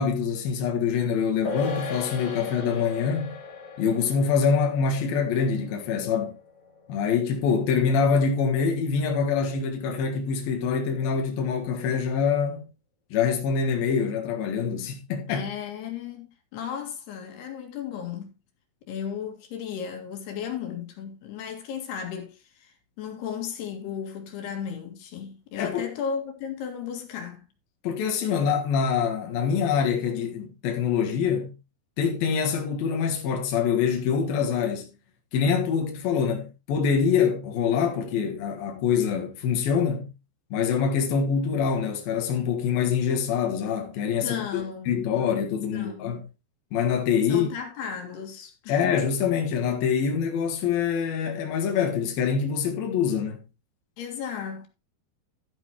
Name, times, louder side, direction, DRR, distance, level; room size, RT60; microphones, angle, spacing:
voice 1, 0.0-3.4 3.8-6.3 6.9-12.7 13.1-15.5 25.6-25.9 27.8-31.5 32.0-34.9 35.3-40.1 40.5-46.2 46.7-47.5 48.7-53.4, left 6 dB, 70° left, 3.4 m, -25 dB
sound 1, 1.4-8.1 8.4-8.5, left 4 dB, 45° left, 2.6 m, -38 dB
voice 2, 15.3-18.3 18.9-27.5 44.2-45.1 45.7-46.1 47.3-48.8 54.0-54.7, left 7 dB, 85° left, 4.1 m, -35 dB
13.0 x 9.2 x 3.0 m
omnidirectional pair, 4.5 m